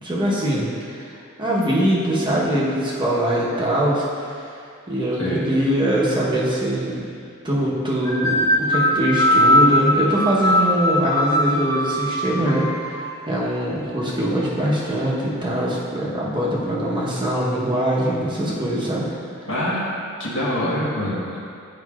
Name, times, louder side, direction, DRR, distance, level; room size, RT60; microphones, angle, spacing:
voice 1, 0.0-4.5 4.9-7.0 7.4-13.0 13.3-19.1 19.4-19.5, right 1 dB, 20° right, -6 dB, 0.9 m, -22 dB
voice 2, 5.1-5.5 19.5-19.8 20.2-21.4, left 1 dB, 60° left, -7 dB, 1.3 m, -24 dB
sound 1, 8.1-13.1, left 1 dB, 15° left, 0.3 m, -20 dB
9.3 x 5.2 x 2.4 m, 2.4 s
head